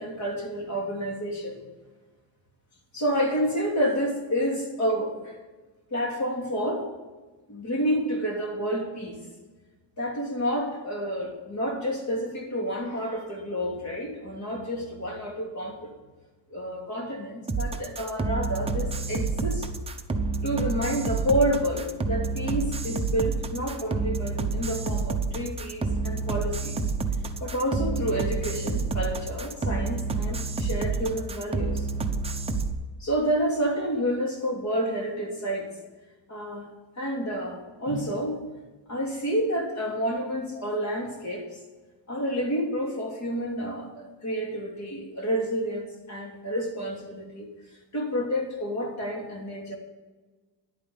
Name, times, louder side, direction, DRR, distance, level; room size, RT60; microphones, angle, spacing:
voice 1, 0.0-1.6 2.9-5.4 5.9-6.9 7.5-9.2 10.0-15.9 16.5-19.7 20.4-26.8 27.4-31.9 33.0-35.7 36.3-36.7 37.0-38.4 38.9-41.6 42.1-47.5 47.9-49.8, equal, 40° left, 0 dB, 3.1 m, -29 dB
sound 1, 17.5-32.7, right 3 dB, 15° right, 0.8 m, -29 dB
11.0 x 9.0 x 7.1 m, 1.3 s
cardioid pair, 160°, 43 cm